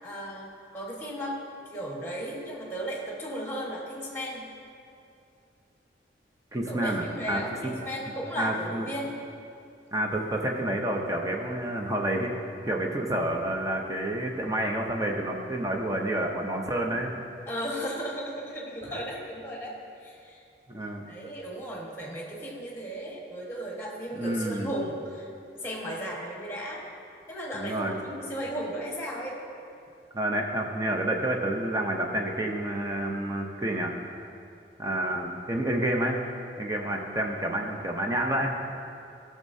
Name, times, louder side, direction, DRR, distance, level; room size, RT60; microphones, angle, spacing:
voice 1, 0.0-1.4 1.7-4.5 6.7-9.1 17.5-20.4 20.8-25.3 25.6-26.8 27.3-29.4, equal, 15° left, -3 dB, 1.4 m, -35 dB
voice 2, 6.5-7.7 8.4-8.9 9.9-12.3 12.6-17.1 18.9-19.0 20.7-21.1 24.2-24.7 27.5-28.0 30.1-33.9 34.8-36.2 36.6-38.6, right 1 dB, 20° right, 1 dB, 0.6 m, -29 dB
15.5 x 6.4 x 2.7 m, 2.6 s
head